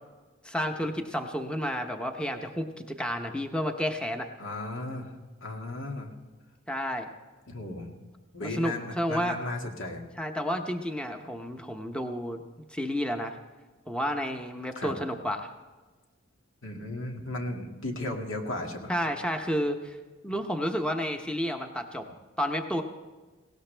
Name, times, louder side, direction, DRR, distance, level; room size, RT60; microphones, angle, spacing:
voice 1, 0.4-4.3 6.7-7.1 8.4-9.4 10.2-12.4 12.7-13.4 13.9-15.5 18.9-20.0 20.2-22.1 22.4-22.8, equal, 5° left, 5 dB, 0.8 m, -31 dB
voice 2, 4.4-5.1 5.4-6.1 7.5-7.9 8.3-10.0 14.7-15.0 16.6-18.9, left 2 dB, 80° left, 2 dB, 2.1 m, -35 dB
19.5 x 17.5 x 3.3 m, 1.3 s
head